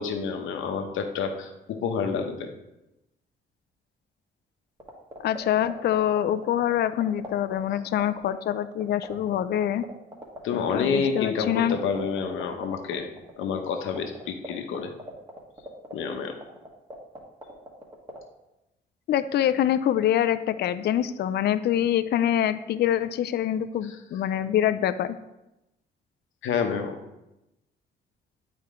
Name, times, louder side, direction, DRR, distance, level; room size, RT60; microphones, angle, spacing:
voice 1, 0.0-2.5 9.3-9.4 10.4-13.1 13.4-14.9 15.9-16.3 23.9-24.0 26.4-27.0, left 6 dB, 85° left, 5 dB, 0.9 m, -28 dB
sound 1, 4.8-18.2, right 1 dB, 25° right, 1.6 m, -38 dB
voice 2, 5.2-9.8 10.5-11.8 19.1-25.2, left 11 dB, 55° left, 12 dB, 0.4 m, -25 dB
8.6 x 4.4 x 3.7 m, 0.93 s
cardioid pair, 90°, 20 cm